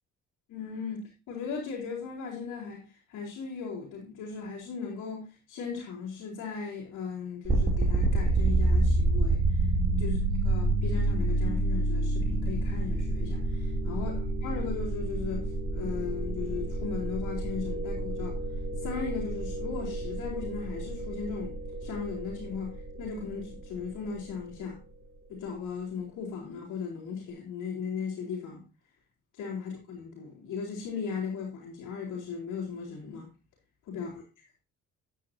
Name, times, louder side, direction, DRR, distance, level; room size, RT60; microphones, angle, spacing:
voice 1, 0.5-2.8 3.1-9.4 9.8-10.2 10.4-15.5 15.7-18.4 18.8-24.8 25.3-28.6 29.4-33.3 33.9-34.1, left 6 dB, 80° left, -6 dB, 4.7 m, -37 dB
sound 1, 7.4-24.4, right 2 dB, 30° right, 3.5 m, -29 dB
11.0 x 10.0 x 2.9 m, 0.31 s
cardioid pair, 90°, 30 cm